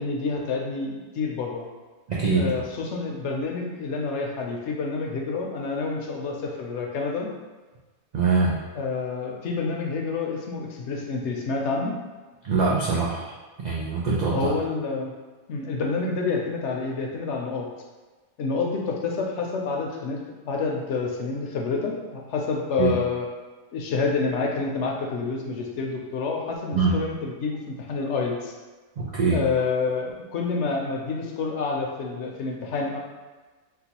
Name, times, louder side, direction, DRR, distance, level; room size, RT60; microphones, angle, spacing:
voice 1, 0.0-1.6 2.3-7.3 8.7-12.0 14.3-15.1 15.5-17.7 18.4-23.3 23.7-28.5 29.3-33.0, left 4 dB, 70° left, 0 dB, 0.8 m, -28 dB
voice 2, 2.1-2.6 8.1-8.5 12.4-13.2 13.6-14.5 22.8-22.9 26.7-27.0 29.0-29.4, right 4 dB, 80° right, -5 dB, 0.3 m, -23 dB
3.8 x 2.3 x 2.8 m, 1.3 s
omnidirectional pair, 1.3 m